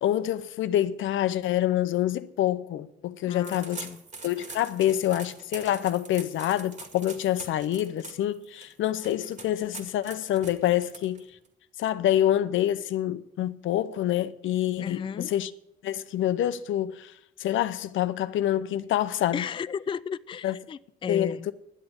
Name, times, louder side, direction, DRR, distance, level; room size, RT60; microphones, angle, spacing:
voice 1, 0.0-3.9 4.2-11.2 11.8-15.5 15.8-17.1 17.4-19.4 20.4-20.6 21.1-21.5, left 12 dB, 75° left, 0.7 m, -26 dB
voice 2, 3.2-4.0 14.8-15.3 19.3-21.5, left 7 dB, 25° left, 0.4 m, -34 dB
sound 1, 3.4-11.5, right 4 dB, 40° right, 2.1 m, -44 dB
11.0 x 8.0 x 8.7 m
cardioid pair, 90°, 20 cm